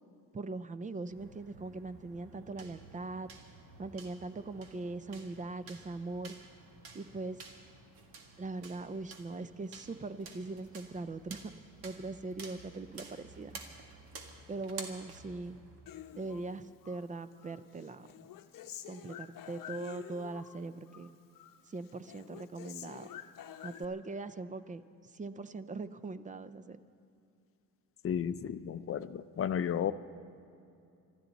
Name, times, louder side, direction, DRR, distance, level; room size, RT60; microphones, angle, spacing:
voice 1, 0.3-3.3 3.8-6.3 6.9-7.4 8.4-11.5 11.8-13.5 14.5-15.6 16.2-18.1 18.9-21.1 21.7-23.1 23.6-24.8 25.1-26.8, right 3 dB, 20° right, 13 dB, 0.5 m, -41 dB
sound 1, 1.1-15.9, right 4 dB, 80° right, 1.8 m, -52 dB
Human voice, 15.9-17.0 17.4-20.6 20.9-21.6 21.9-23.8, left 11 dB, 60° left, 0.8 m, -48 dB
voice 2, 28.0-29.9, left 9 dB, 35° left, 13 dB, 0.5 m, -33 dB
26.0 x 13.0 x 4.1 m, 2.6 s
cardioid pair, 130°, 37 cm